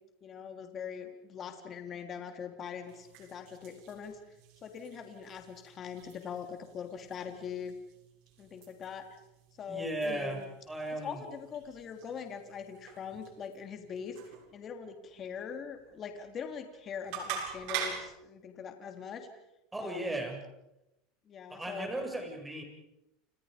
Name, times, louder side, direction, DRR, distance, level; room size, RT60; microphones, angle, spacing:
voice 1, 0.2-4.2 4.6-7.8 8.4-9.0 9.6-10.4 11.0-19.3 19.8-20.2 21.3-21.9, left 7 dB, 30° left, 5 dB, 3.3 m, -42 dB
sound 1, 2.8-18.2, right 7 dB, 65° right, 7.2 m, -46 dB
voice 2, 9.7-10.4 10.7-11.2 19.7-20.4 21.5-22.6, right 1 dB, 10° right, 3 dB, 6.9 m, -36 dB
29.5 x 29.5 x 5.2 m, 0.90 s
supercardioid pair, 130°, 0 cm